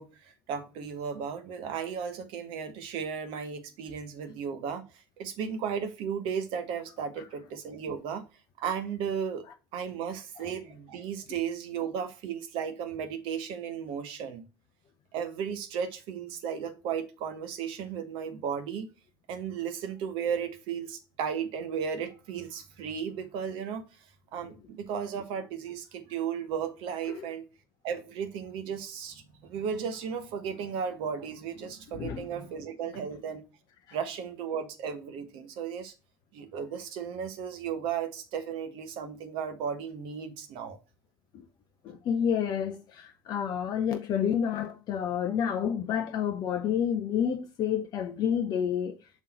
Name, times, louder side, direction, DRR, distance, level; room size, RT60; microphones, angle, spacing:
voice 1, 0.0-4.8 5.2-8.2 8.6-9.4 9.7-14.4 15.1-18.9 19.3-23.8 24.3-27.5 27.8-33.4 33.9-35.9 36.3-40.8, right 7 dB, 50° right, 1.1 m, -35 dB
voice 2, 31.9-32.3 33.9-34.0 41.8-49.0, left 8 dB, 40° left, 0.5 m, -29 dB
6.3 x 3.7 x 4.2 m
figure-of-eight pair, 70°, 11 cm